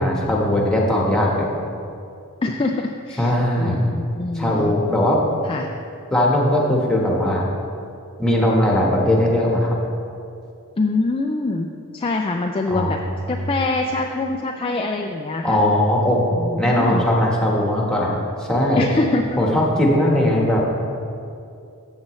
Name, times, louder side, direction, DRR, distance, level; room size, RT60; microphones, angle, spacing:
voice 1, 0.0-1.5 3.2-3.9 4.3-5.2 6.1-7.4 8.2-9.8 12.7-13.0 15.4-16.2 16.5-18.1 18.5-18.8 19.4-20.6, left 1 dB, 5° left, -3 dB, 1.3 m, -19 dB
voice 2, 2.4-4.7 5.4-5.7 10.8-11.7 11.9-13.0 13.3-15.6 16.3-17.0 18.8-19.4, left 2 dB, 25° left, 2 dB, 0.4 m, -24 dB
13.5 x 7.4 x 3.2 m, 2.5 s
head